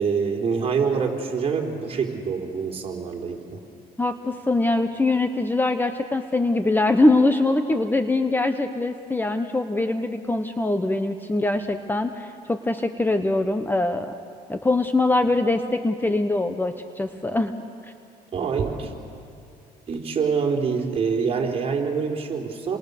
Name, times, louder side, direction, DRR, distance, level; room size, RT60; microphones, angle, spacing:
voice 1, 0.0-3.6 18.3-18.9 19.9-22.8, right 5 dB, 35° right, 1 dB, 3.6 m, -25 dB
voice 2, 4.0-14.1 14.5-17.6, left 2 dB, 10° left, 8 dB, 1.0 m, -23 dB
30.0 x 23.0 x 6.8 m, 2.4 s
cardioid pair, 110°, 17 cm